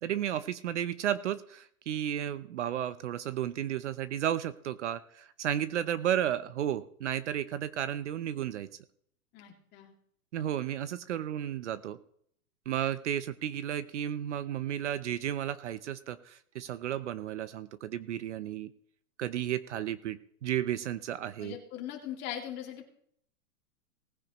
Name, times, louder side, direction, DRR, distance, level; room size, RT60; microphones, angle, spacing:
voice 1, 0.0-8.7 10.3-12.0 12.7-18.7 19.2-21.6, right 10 dB, 50° right, 15 dB, 0.7 m, -33 dB
voice 2, 9.3-9.9 21.4-22.9, left 10 dB, 25° left, 1 dB, 2.4 m, -40 dB
19.5 x 9.9 x 3.0 m, 0.65 s
hypercardioid pair, 155°, 44 cm